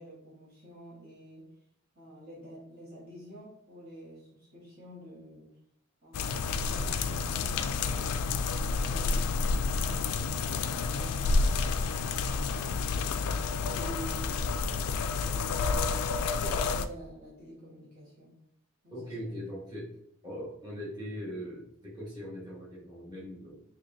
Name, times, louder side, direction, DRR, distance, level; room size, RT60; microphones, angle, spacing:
voice 1, 0.0-1.5 1.9-5.5 6.0-8.2 8.7-11.7 12.1-18.4 18.8-19.3, equal, 45° right, -6 dB, 1.2 m, -48 dB
sound 1, 6.1-16.9, left 4 dB, 85° left, 0.3 m, -29 dB
voice 2, 18.9-19.9 20.2-23.6, equal, 20° right, -8 dB, 1.4 m, -40 dB
4.4 x 3.0 x 2.6 m, 0.74 s
head